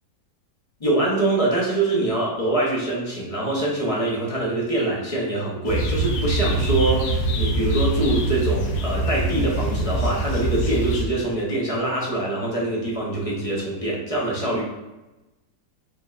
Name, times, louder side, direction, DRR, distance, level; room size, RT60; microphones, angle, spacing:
voice 1, 0.8-14.6, right 2 dB, 25° left, -4 dB, 0.8 m, -24 dB
sound 1, 5.6-11.0, right 2 dB, 80° left, 1.2 m, -24 dB
5.1 x 3.2 x 2.5 m, 1.0 s
omnidirectional pair, 1.7 m